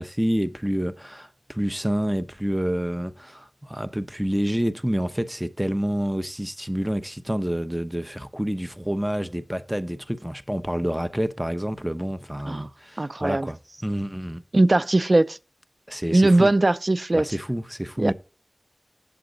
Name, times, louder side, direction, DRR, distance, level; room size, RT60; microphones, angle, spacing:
voice 1, 0.0-14.4 15.9-16.5 17.1-18.1, equal, 5° right, 0.8 m, -28 dB
voice 2, 13.0-13.5 14.5-15.4 16.1-17.3 18.0-18.1, right 2 dB, 50° right, 0.4 m, -20 dB
8.1 x 7.6 x 3.8 m
wide cardioid pair, 45°, 0 cm